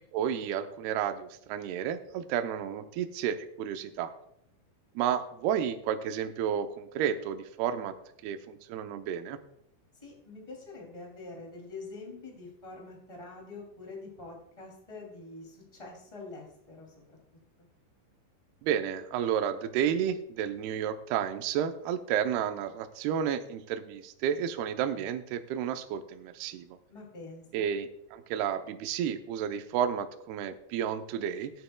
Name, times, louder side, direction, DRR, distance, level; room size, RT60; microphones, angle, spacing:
voice 1, 0.1-4.1 5.0-7.9 8.2-9.4 18.6-26.8 27.5-31.5, right 9 dB, 85° right, 7 dB, 2.2 m, -31 dB
voice 2, 9.9-17.2 17.6-17.7 26.9-27.7, left 3 dB, 15° left, 0 dB, 1.2 m, -45 dB
17.5 x 9.2 x 2.3 m, 0.76 s
omnidirectional pair, 5.4 m